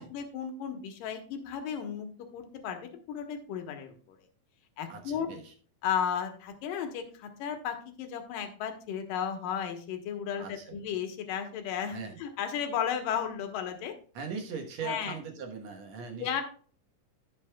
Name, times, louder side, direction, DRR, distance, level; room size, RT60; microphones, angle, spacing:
voice 1, 0.0-2.1 2.3-3.9 4.8-5.3 5.8-13.9 14.4-14.5 14.8-15.2 16.2-16.4, left 8 dB, 75° left, 5 dB, 2.8 m, -34 dB
voice 2, 4.9-5.5 10.4-10.8 11.9-12.2 14.1-16.4, right 5 dB, 60° right, 2 dB, 2.1 m, -40 dB
15.5 x 6.1 x 2.3 m, 0.43 s
omnidirectional pair, 4.0 m